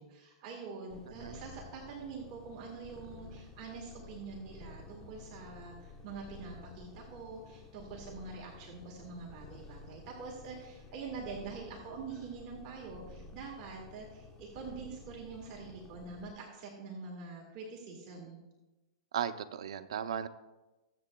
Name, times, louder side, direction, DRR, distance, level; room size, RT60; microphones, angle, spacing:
voice 1, 0.0-18.4, right 4 dB, 40° right, -2 dB, 1.7 m, -45 dB
Purr, 0.9-16.3, left 3 dB, 20° left, 0.9 m, -52 dB
voice 2, 19.1-20.3, right 8 dB, 80° right, 10 dB, 0.6 m, -36 dB
21.5 x 7.5 x 2.3 m, 1.1 s
supercardioid pair, 155°, 3 cm